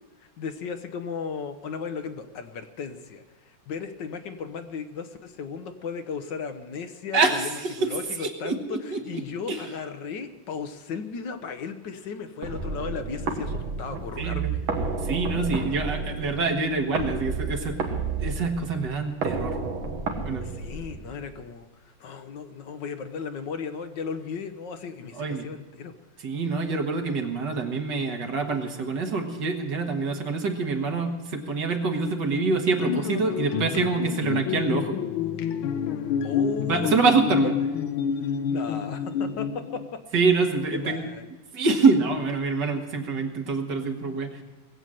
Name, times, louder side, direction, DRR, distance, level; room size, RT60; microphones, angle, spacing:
voice 1, 0.2-15.0 20.4-25.9 36.2-36.9 38.2-40.0 40.7-41.3, left 5 dB, 65° left, 8 dB, 1.6 m, -36 dB
voice 2, 8.2-9.2 9.5-9.6 14.2-14.5 15.0-17.8 18.2-19.6 20.2-20.4 25.2-25.4 26.2-35.0 36.7-37.5 40.1-41.1 41.5-44.4, right 4 dB, 60° right, 3 dB, 2.1 m, -25 dB
sound 1, 12.4-21.4, right 4 dB, 85° right, 2.3 m, -31 dB
sound 2, 32.8-39.9, left 7 dB, 90° left, 1.6 m, -28 dB
20.0 x 8.1 x 7.6 m, 1.2 s
omnidirectional pair, 2.2 m